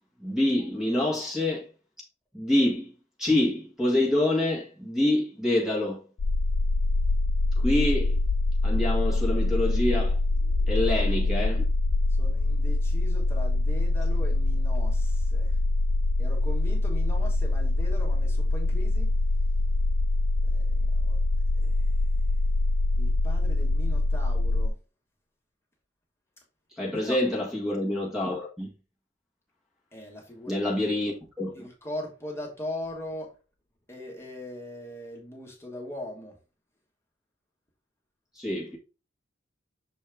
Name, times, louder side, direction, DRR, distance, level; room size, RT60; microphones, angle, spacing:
voice 1, 0.2-1.6 2.3-2.9 3.2-6.0 7.6-8.2 8.6-10.2 10.7-11.6 26.8-28.7 30.5-31.7 38.4-38.8, left 1 dB, 5° right, 1.5 m, -26 dB
sound 1, 6.2-24.7, left 2 dB, 80° left, 0.4 m, -24 dB
voice 2, 12.2-15.5 16.2-19.1 20.4-21.2 21.6-21.9 23.0-24.8 26.9-27.2 29.9-30.9 31.5-33.3 33.9-36.3, left 1 dB, 15° left, 1.6 m, -40 dB
6.4 x 4.2 x 3.4 m
head